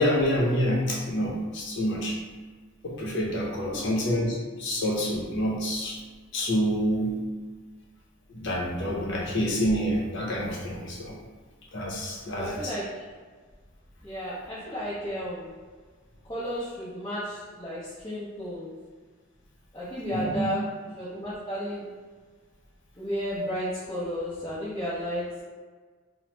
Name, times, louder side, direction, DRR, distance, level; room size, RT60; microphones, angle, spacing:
voice 1, 0.0-2.1 2.8-6.0 6.3-7.1 8.3-11.2 11.7-12.6 20.1-20.4, equal, 60° left, -4 dB, 0.7 m, -27 dB
voice 2, 3.7-4.0 12.4-13.0 14.0-15.5 16.3-18.7 19.7-20.7 21.0-21.8 23.0-25.4, equal, 20° left, -11 dB, 0.7 m, -33 dB
3.0 x 2.1 x 3.1 m, 1.4 s
head